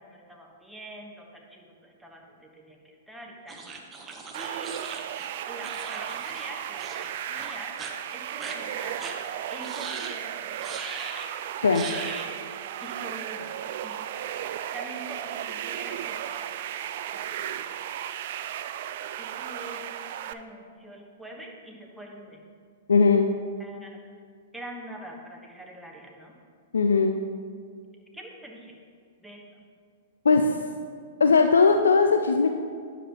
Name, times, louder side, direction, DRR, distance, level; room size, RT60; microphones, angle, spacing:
voice 1, 0.0-3.6 4.3-4.9 5.5-7.0 7.3-7.7 8.1-9.0 9.5-10.6 11.7-12.0 12.8-14.0 14.7-16.5 17.1-17.7 19.2-19.8 20.3-22.4 23.6-23.9 24.5-26.3 28.1-28.8 29.2-29.6, right 1 dB, ahead, -1 dB, 1.1 m, -44 dB
sound 1, 3.5-6.5 6.8-7.1 7.4-7.9 8.4-8.6 9.0-9.2 9.6-10.2 10.6-11.3 11.7-12.3, right 4 dB, 20° right, 0.8 m, -39 dB
sound 2, 4.3-20.3, right 10 dB, 55° right, 0.3 m, -35 dB
voice 2, 22.9-23.3 26.7-27.2 30.2-30.6 31.2-32.5, left 4 dB, 85° left, 5 dB, 0.4 m, -19 dB
9.7 x 7.0 x 3.0 m, 2.1 s
hypercardioid pair, 120°, 0 cm